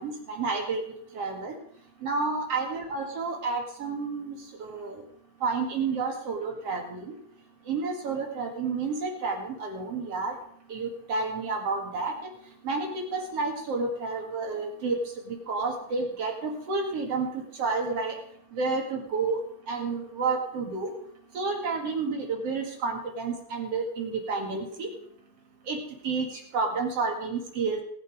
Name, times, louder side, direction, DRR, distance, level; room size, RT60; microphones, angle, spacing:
voice 1, 0.0-1.6 2.0-5.0 5.4-7.2 7.7-10.4 10.7-12.1 12.6-15.0 15.3-18.2 18.5-19.4 19.7-20.9 21.3-24.9 25.7-27.8, right 4 dB, 50° right, 2 dB, 2.7 m, -30 dB
19.0 x 8.2 x 5.0 m, 0.65 s
omnidirectional pair, 3.9 m